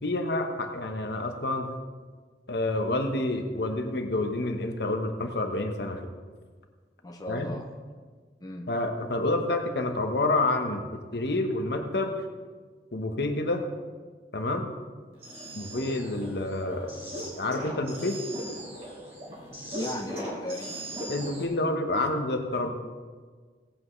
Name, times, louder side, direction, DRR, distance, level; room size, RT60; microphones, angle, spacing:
voice 1, 0.0-1.7 2.5-6.0 7.3-7.6 8.7-10.8 11.1-12.2 12.9-13.6 14.3-14.7 15.5-18.2 21.1-22.7, left 2 dB, 60° left, 5 dB, 1.1 m, -28 dB
voice 2, 7.0-7.7 8.4-8.7 19.7-20.8, left 1 dB, 20° left, 0 dB, 0.7 m, -36 dB
sound 1, 15.1-21.5, right 1 dB, 35° right, 3.1 m, -39 dB
18.0 x 8.3 x 3.2 m, 1.5 s
head